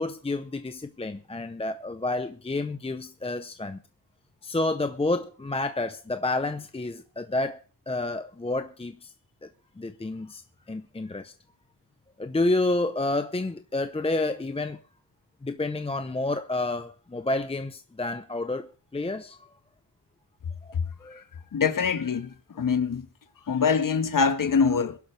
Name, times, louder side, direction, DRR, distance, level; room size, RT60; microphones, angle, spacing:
voice 1, 0.0-3.8 4.4-7.6 7.9-9.1 9.8-10.4 10.7-11.3 12.2-14.8 15.4-19.4 21.0-21.2, left 2 dB, 15° left, 0.7 m, -29 dB
voice 2, 21.5-23.1 23.5-25.0, left 5 dB, 55° left, 1.5 m, -24 dB
22.5 x 11.5 x 3.4 m
wide cardioid pair, 115°, 40 cm